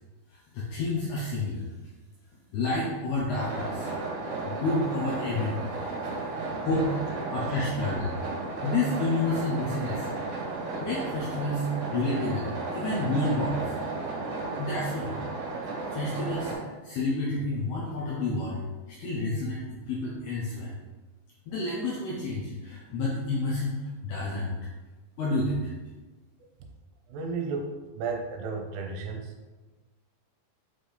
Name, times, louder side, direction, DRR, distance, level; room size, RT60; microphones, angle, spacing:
voice 1, 0.3-1.7 2.5-3.9 4.6-5.6 6.6-6.9 7.3-8.2 8.6-10.1 10.8-13.7 14.6-15.2 15.9-20.8 21.5-24.6 25.2-25.7, left 2 dB, 80° left, -5 dB, 2.4 m, -30 dB
sound 1, 3.3-16.5, right 3 dB, 60° right, 2.9 m, -34 dB
voice 2, 27.1-29.6, right 4 dB, 80° right, 2 dB, 3.1 m, -34 dB
7.9 x 4.1 x 3.4 m, 1.2 s
omnidirectional pair, 5.7 m